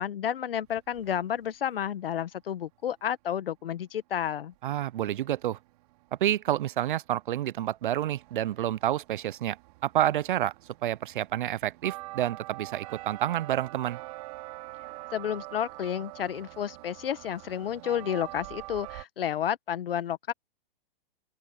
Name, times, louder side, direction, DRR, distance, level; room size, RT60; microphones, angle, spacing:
voice 1, 0.0-4.5 15.1-20.3, left 9 dB, 75° left, 1.6 m, -31 dB
sound 1, 0.6-1.5 4.5-4.6 4.8-19.0, right 21 dB, 40° right, 3.7 m, -45 dB
voice 2, 4.6-5.6 6.2-9.6 9.8-10.5 10.8-14.0, right 12 dB, 60° right, 0.6 m, -29 dB
open air
hypercardioid pair, 150°, 29 cm